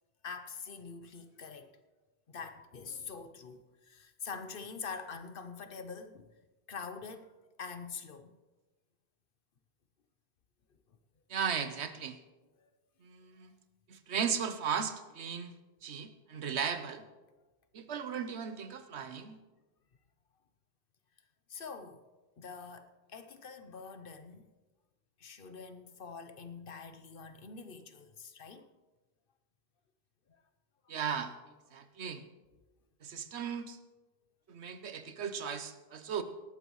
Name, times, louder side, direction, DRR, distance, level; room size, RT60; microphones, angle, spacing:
voice 1, 0.2-1.7 2.3-6.3 6.7-7.3 7.6-8.4 12.6-12.7 21.5-22.0 22.4-24.5 25.2-28.7 33.3-33.4, left 5 dB, 60° left, 1.0 m, -45 dB
voice 2, 11.3-12.2 13.0-13.6 13.9-15.5 15.8-17.0 17.7-19.4 30.9-31.3 31.7-32.2 33.0-33.8 34.5-36.2, right 7 dB, 80° right, 1.1 m, -36 dB
18.0 x 13.5 x 3.1 m
omnidirectional pair, 1.1 m